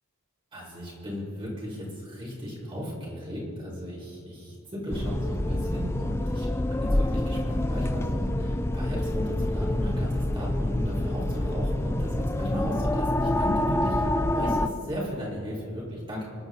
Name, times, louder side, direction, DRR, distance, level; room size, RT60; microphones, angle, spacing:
voice 1, 0.5-16.2, equal, 25° right, -6 dB, 5.0 m, -35 dB
sound 1, 4.9-14.7, left 1 dB, 10° left, 0.5 m, -27 dB
26.0 x 12.0 x 4.0 m, 2.5 s
head